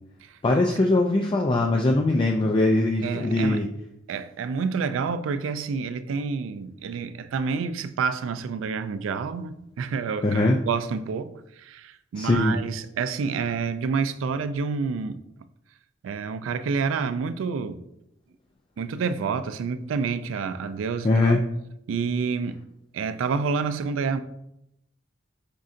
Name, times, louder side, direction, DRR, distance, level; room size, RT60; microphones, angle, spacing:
voice 1, 0.4-3.7 10.2-10.6 12.2-12.6 21.0-21.4, left 2 dB, 25° left, 0.3 m, -21 dB
voice 2, 3.0-3.6 4.1-15.2 16.0-17.8 18.8-21.4 21.9-22.6 22.9-24.2, right 5 dB, 75° right, 0.3 m, -28 dB
5.3 x 3.7 x 2.4 m
head